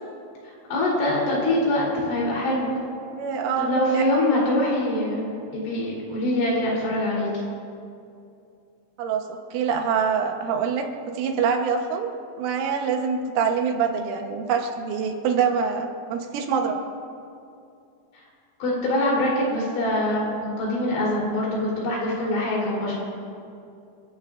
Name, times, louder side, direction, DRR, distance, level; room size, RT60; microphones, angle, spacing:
voice 1, 0.7-2.7 3.6-7.3 18.6-23.0, left 1 dB, 70° left, -4 dB, 6.0 m, -24 dB
voice 2, 3.1-4.0 9.0-12.1 12.4-16.8, right 6 dB, 85° right, 3 dB, 3.7 m, -25 dB
27.0 x 15.5 x 2.6 m, 2.5 s
omnidirectional pair, 5.5 m